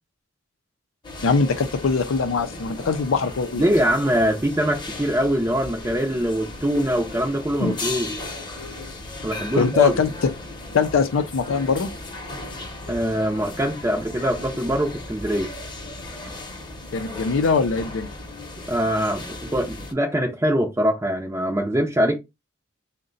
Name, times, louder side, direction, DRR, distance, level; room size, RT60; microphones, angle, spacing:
sound 1, 1.0-19.9, left 2 dB, 25° left, 0.8 m, -36 dB
voice 1, 1.2-3.7 7.6-7.8 9.6-10.1 10.7-11.9 16.9-18.1, left 5 dB, 85° left, 0.5 m, -22 dB
voice 2, 3.6-8.1 9.2-9.9 12.9-15.5 18.7-22.2, equal, 15° right, 0.5 m, -23 dB
3.8 x 2.2 x 3.8 m
head